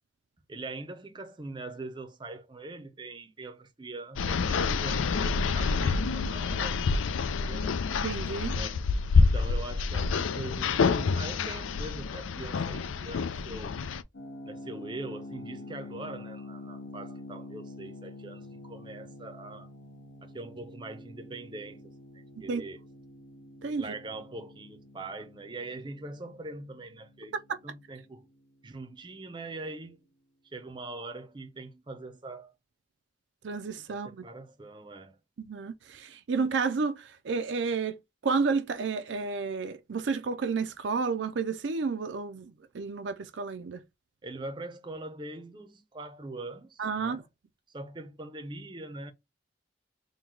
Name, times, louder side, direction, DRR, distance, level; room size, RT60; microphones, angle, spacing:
voice 1, 0.5-7.8 8.5-8.9 9.1-13.8 14.4-19.7 20.2-22.8 23.8-27.4 27.6-28.3 28.6-30.1 30.5-32.5 33.9-35.2 44.2-47.3 47.7-49.1, right 2 dB, 25° right, 0.6 m, -42 dB
sound 1, 4.2-14.0, left 4 dB, 90° left, 0.4 m, -27 dB
voice 2, 8.0-8.6 22.4-22.6 23.6-23.8 33.4-34.2 35.4-43.8 46.8-47.2, right 4 dB, 65° right, 0.4 m, -31 dB
sound 2, 14.1-28.9, left 2 dB, 70° left, 0.8 m, -47 dB
3.8 x 2.2 x 4.4 m
head